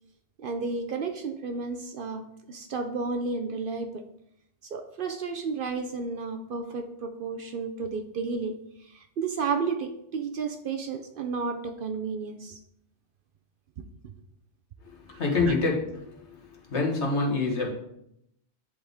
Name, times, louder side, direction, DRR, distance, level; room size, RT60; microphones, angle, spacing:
voice 1, 0.4-4.1 4.7-12.6 15.1-15.5, right 4 dB, 60° right, 6 dB, 0.7 m, -32 dB
voice 2, 15.1-16.3 16.7-17.7, left 3 dB, 70° left, -1 dB, 1.6 m, -26 dB
10.5 x 4.0 x 3.5 m, 0.76 s
omnidirectional pair, 1.2 m